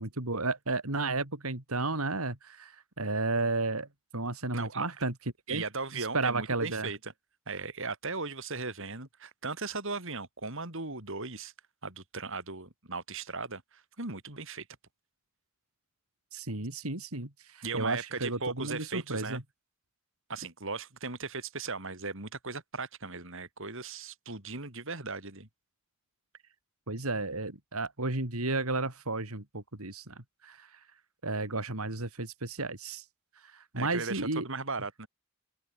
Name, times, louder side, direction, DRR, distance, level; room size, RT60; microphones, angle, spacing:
voice 1, 0.0-3.9 4.1-5.1 5.5-5.6 5.9-6.9 16.3-19.4 26.9-30.8 31.2-33.1 33.4-34.4, right 3 dB, 90° right, 3.9 m, -33 dB
voice 2, 4.5-4.9 5.5-7.1 7.5-11.5 11.8-14.7 17.6-19.4 20.3-25.5 33.7-35.1, right 4 dB, 65° right, 5.3 m, -37 dB
open air
head